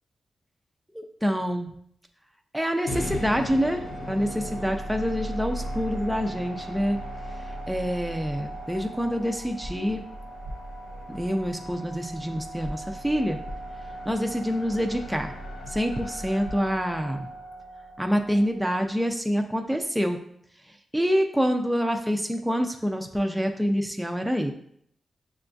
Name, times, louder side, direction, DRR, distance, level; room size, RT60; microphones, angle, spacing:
voice 1, 0.9-1.7 2.5-7.0 7.7-10.0 11.1-13.4 14.1-15.3 15.7-17.3 18.0-20.2 20.9-24.5, equal, 5° right, 3 dB, 0.3 m, -26 dB
sound 1, 2.9-19.0, equal, 85° left, 0.7 m, -37 dB
sound 2, 9.6-9.7 10.4-10.6 12.6-12.7 13.4-13.6 15.6-15.7 16.4-16.6, equal, 80° right, 0.6 m, -37 dB
6.7 x 2.3 x 2.5 m, 0.67 s
wide cardioid pair, 105°, 0 cm